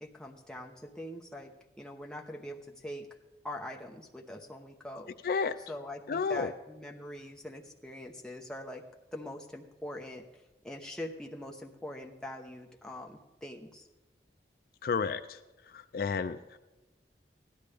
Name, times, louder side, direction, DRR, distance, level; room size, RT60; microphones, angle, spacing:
voice 1, 0.0-3.1 3.4-5.1 5.7-8.8 9.1-10.2 10.6-13.9, left 1 dB, 5° left, 1 dB, 0.8 m, -43 dB
voice 2, 5.2-5.6 6.1-6.5 14.8-15.4 15.7-16.6, left 5 dB, 55° left, 11 dB, 0.3 m, -31 dB
16.0 x 12.0 x 3.3 m, 1.1 s
head